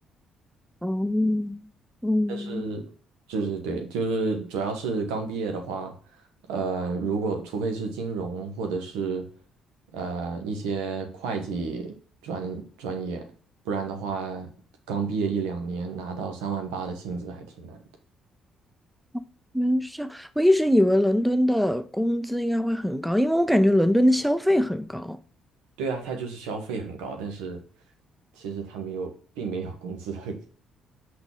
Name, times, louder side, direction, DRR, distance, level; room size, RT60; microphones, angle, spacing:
voice 1, 0.8-1.6 2.0-2.6 19.1-19.2 19.5-25.2, equal, ahead, 0.6 m, -22 dB
voice 2, 2.3-2.8 3.3-5.9 6.5-9.2 9.9-11.9 12.2-13.2 13.6-14.5 14.9-17.8 25.8-27.6 28.4-30.5, right 4 dB, 75° right, 1.3 m, -31 dB
6.1 x 5.1 x 3.6 m
hypercardioid pair, 45°, 0 cm